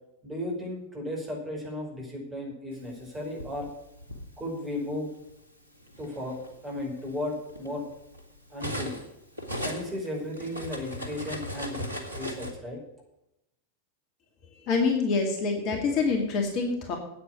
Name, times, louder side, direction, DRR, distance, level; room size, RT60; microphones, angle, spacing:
voice 1, 0.2-3.7 4.4-5.1 6.0-6.4 6.6-7.8 8.5-9.0 9.6-11.8 12.1-12.8, left 1 dB, 15° right, -1 dB, 5.5 m, -35 dB
Cutlery silverware, 3.0-4.3 5.2-5.4 5.8-9.1 9.4-12.5, equal, 80° right, 2.1 m, -37 dB
voice 2, 14.6-17.0, left 4 dB, 40° left, 2 dB, 2.3 m, -26 dB
9.0 x 8.9 x 8.5 m, 0.86 s
figure-of-eight pair, 90°, 0 cm